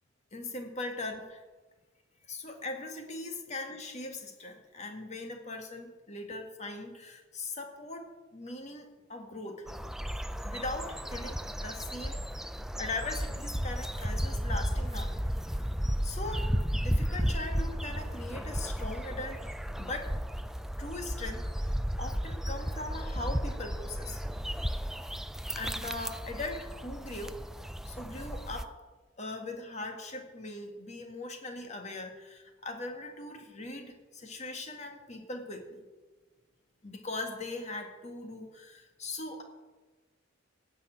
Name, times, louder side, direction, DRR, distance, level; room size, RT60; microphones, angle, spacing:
voice 1, 0.3-1.4 2.2-9.7 10.4-12.2 12.8-15.7 16.0-19.5 19.8-20.1 20.8-24.2 25.5-27.4 27.9-28.8 29.2-35.8 36.8-39.4, left 2 dB, 35° left, 4 dB, 1.9 m, -40 dB
sound 1, 9.7-28.6, equal, ahead, 0.4 m, -34 dB
16.5 x 5.7 x 9.0 m, 1.3 s
head